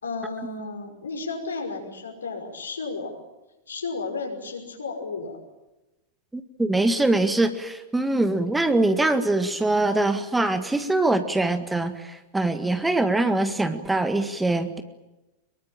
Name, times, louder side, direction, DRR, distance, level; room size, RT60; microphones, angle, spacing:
voice 1, 0.0-3.2 3.7-5.4, left 3 dB, 70° left, 3 dB, 5.5 m, -33 dB
voice 2, 6.3-14.8, right 2 dB, 5° right, 9 dB, 1.8 m, -23 dB
25.0 x 22.5 x 8.9 m, 1.0 s
figure-of-eight pair, 90°, 0 cm